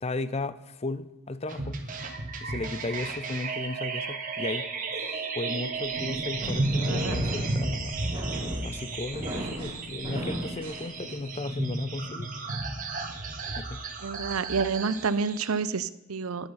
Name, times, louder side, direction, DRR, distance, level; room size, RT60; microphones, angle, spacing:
voice 1, 0.0-1.8 2.4-8.0 8.6-12.3 13.6-13.8, left 2 dB, 30° left, 15 dB, 0.5 m, -35 dB
sound 1, 1.5-15.6, right 3 dB, 40° right, 1.6 m, -33 dB
sound 2, 5.8-11.4, equal, 25° right, 3.0 m, -36 dB
voice 2, 6.9-7.3 14.0-16.5, right 5 dB, 90° right, 16 dB, 0.6 m, -29 dB
11.0 x 10.5 x 5.6 m, 1.0 s
head